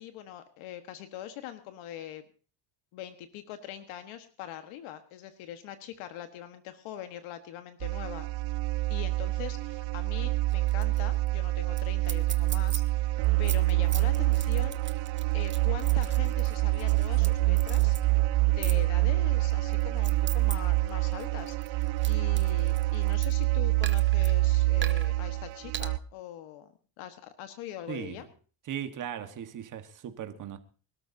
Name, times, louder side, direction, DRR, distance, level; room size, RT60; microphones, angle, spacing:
voice 1, 0.0-2.2 2.9-8.2 8.9-18.0 18.5-28.3, left 11 dB, 75° left, 1.6 m, -43 dB
sound 1, 7.8-26.0, right 20 dB, 70° right, 0.7 m, -26 dB
sound 2, 10.5-11.0 11.3-11.4 11.8-11.9 12.1-12.8 13.2-17.3 17.6-18.0 18.6-18.8 19.5-20.5 20.9-23.4 23.8-24.3 24.8-25.1 25.7-25.9, right 8 dB, 25° right, 0.7 m, -39 dB
voice 2, 27.9-28.2 28.7-30.6, right 9 dB, 40° right, 1.6 m, -38 dB
24.5 x 13.0 x 2.8 m
cardioid pair, 150°, 49 cm